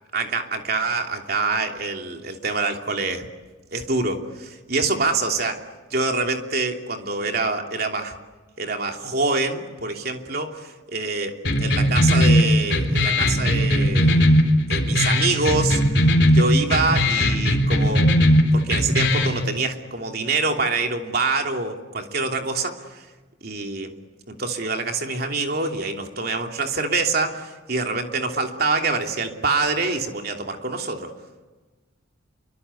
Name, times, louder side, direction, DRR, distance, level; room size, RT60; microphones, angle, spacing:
voice 1, 0.1-3.2 3.7-5.6 5.9-8.1 8.6-14.2 14.7-16.0 16.3-18.1 18.5-23.0 23.4-23.9 24.3-31.1, right 3 dB, 50° right, 4 dB, 3.0 m, -25 dB
sound 1, 11.4-19.4, equal, 60° left, 3.8 m, -19 dB
28.5 x 24.0 x 8.5 m, 1.3 s
head